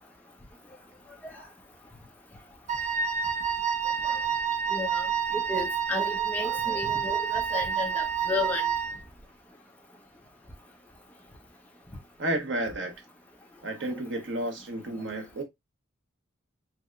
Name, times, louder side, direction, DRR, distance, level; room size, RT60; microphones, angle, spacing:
Wind instrument woodwind instrument, 2.7-9.0, right 7 dB, 35° right, 0.5 m, -28 dB
voice 1, 4.7-5.1 5.3-8.7, left 3 dB, 10° left, 1.0 m, -33 dB
voice 2, 12.2-12.9 13.6-15.4, right 1 dB, 70° right, 1.1 m, -31 dB
4.7 x 2.8 x 2.4 m
head